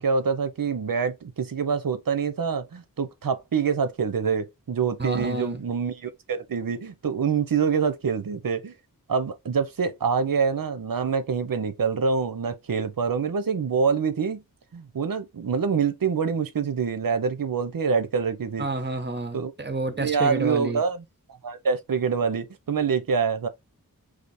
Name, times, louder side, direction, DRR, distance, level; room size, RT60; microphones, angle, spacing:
voice 1, 0.0-8.7 9.1-14.4 14.7-18.7 19.3-19.5 20.0-21.0 21.4-23.5, right 6 dB, 70° right, 0.8 m, -26 dB
voice 2, 5.0-5.6 18.6-20.8, right 2 dB, 30° right, 1.2 m, -29 dB
5.1 x 2.0 x 4.3 m
wide cardioid pair, 65°, 35 cm